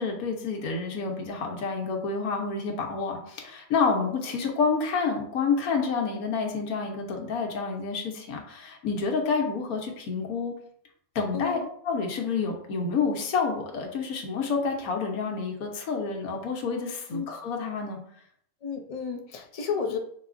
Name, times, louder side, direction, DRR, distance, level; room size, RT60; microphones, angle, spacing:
voice 1, 0.0-10.5 11.1-11.6 11.8-18.0, left 5 dB, 80° left, 1 dB, 1.3 m, -29 dB
voice 2, 11.3-11.7 17.1-17.3 18.6-20.0, left 6 dB, 65° left, 3 dB, 0.3 m, -32 dB
5.5 x 3.9 x 2.5 m, 0.66 s
omnidirectional pair, 1.5 m